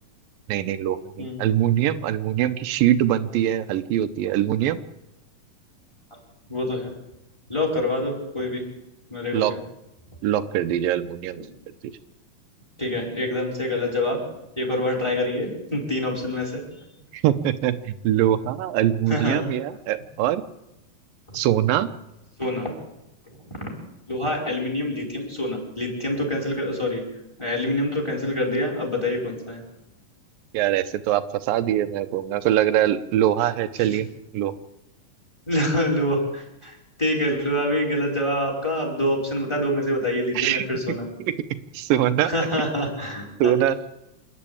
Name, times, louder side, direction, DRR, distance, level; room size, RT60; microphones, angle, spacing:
voice 1, 0.5-4.8 9.3-9.5 10.2-11.5 17.1-20.4 21.3-21.9 30.5-34.1 34.3-34.5 40.4-41.3 41.7-42.3 43.4-43.8, right 12 dB, 85° right, 10 dB, 2.6 m, -23 dB
voice 2, 6.5-6.9 7.5-8.6 9.1-9.4 11.3-11.5 12.8-14.2 14.6-16.6 19.1-19.4 21.3-21.4 22.4-22.7 23.6-23.7 24.1-27.0 27.4-29.6 33.9-34.0 35.5-36.7 37.0-41.0 42.2-43.5, left 1 dB, 5° left, 0 dB, 4.6 m, -26 dB
27.5 x 11.0 x 8.7 m, 0.89 s
omnidirectional pair, 3.9 m